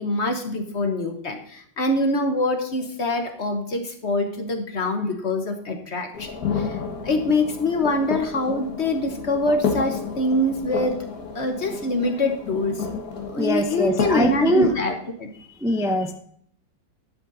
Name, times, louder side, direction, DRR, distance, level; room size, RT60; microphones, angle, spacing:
voice 1, 0.0-6.3 6.5-6.8 7.0-11.0 11.3-12.9 13.3-15.3, left 2 dB, 40° left, 5 dB, 1.4 m, -24 dB
sound 1, 6.1-14.7, left 5 dB, 55° left, 1.9 m, -30 dB
voice 2, 13.4-14.7 15.6-16.1, equal, 5° right, 5 dB, 0.4 m, -22 dB
11.5 x 7.7 x 4.1 m, 0.63 s
omnidirectional pair, 1.9 m